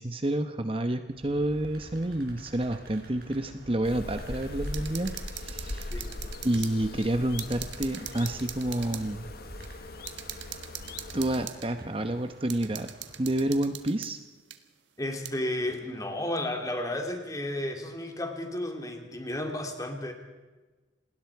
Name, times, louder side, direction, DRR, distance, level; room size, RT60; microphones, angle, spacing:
voice 1, 0.0-5.9 6.4-9.3 11.1-12.9 13.2-14.2, right 1 dB, 30° right, 8 dB, 0.9 m, -29 dB
sound 1, 1.1-14.0, right 1 dB, 50° right, 5.1 m, -50 dB
sound 2, 3.8-11.5, left 2 dB, 50° left, 1.0 m, -40 dB
sound 3, 4.6-6.7 7.0-7.1 7.4-9.0 9.6-9.7 10.1-11.7 12.5-14.1 14.5-14.6 15.2-15.3, right 12 dB, 80° right, 1.6 m, -41 dB
voice 2, 5.9-6.3 15.0-20.1, left 1 dB, 20° left, 4 dB, 2.5 m, -33 dB
28.0 x 20.0 x 4.7 m, 1.3 s
head